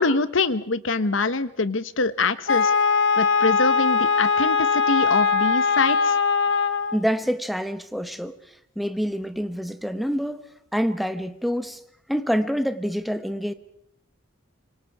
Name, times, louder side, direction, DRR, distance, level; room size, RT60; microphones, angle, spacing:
voice 1, 0.0-2.7 3.2-6.2, left 3 dB, 85° left, 13 dB, 1.2 m, -24 dB
Wind instrument woodwind instrument, 2.5-7.0, left 5 dB, 70° left, 1.3 m, -21 dB
voice 2, 6.9-8.4 8.8-10.4 10.7-11.8 12.1-13.5, equal, ahead, 9 dB, 1.1 m, -26 dB
26.5 x 24.5 x 4.8 m, 0.70 s
head